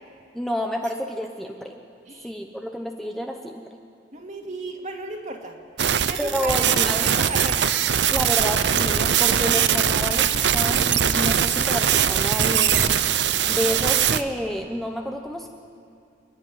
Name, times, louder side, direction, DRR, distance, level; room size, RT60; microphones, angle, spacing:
voice 1, 0.3-1.7 2.2-3.8 6.2-7.2 8.1-10.3 10.5-15.5, equal, ahead, 2 dB, 0.9 m, -29 dB
voice 2, 4.1-5.6 5.8-7.7, right 2 dB, 40° right, 2 dB, 2.3 m, -35 dB
sound 1, 5.8-14.2, right 8 dB, 75° right, 0.7 m, -21 dB
28.5 x 10.5 x 9.3 m, 2.6 s
head